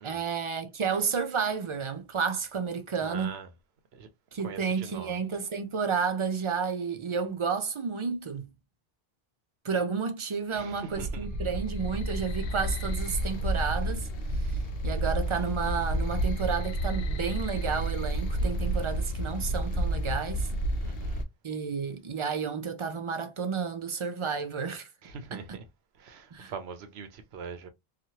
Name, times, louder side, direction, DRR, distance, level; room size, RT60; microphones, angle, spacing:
voice 1, 0.0-3.3 4.3-8.5 9.6-14.1 14.4-20.5 21.4-24.9 25.3-25.6 26.3-26.5, right 5 dB, 50° right, 0.3 m, -31 dB
voice 2, 3.0-3.5 3.9-4.1 4.4-5.1 10.5-11.3 20.8-21.2 25.0-25.6 26.0-27.7, right 5 dB, 85° right, 0.9 m, -42 dB
sound 1, 10.9-21.2, right 1 dB, 70° left, 0.8 m, -30 dB
3.1 x 2.4 x 2.7 m
omnidirectional pair, 1.0 m